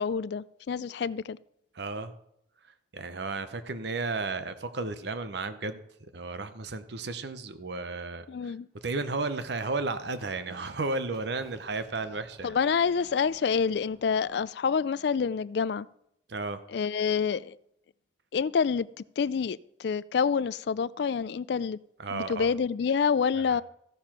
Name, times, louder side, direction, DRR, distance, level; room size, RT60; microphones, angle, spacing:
voice 1, 0.0-1.4 8.3-8.7 12.4-15.9 16.7-17.6 18.3-18.9 19.2-21.8 22.1-23.6, left 6 dB, 60° left, 0.3 m, -27 dB
voice 2, 1.7-2.1 2.6-5.8 6.1-8.5 8.8-12.6 16.3-16.6 22.0-22.5 23.3-23.6, right 3 dB, 60° right, 0.7 m, -33 dB
Run, 8.7-14.3, equal, 5° right, 2.9 m, -60 dB
14.5 x 6.7 x 5.9 m
head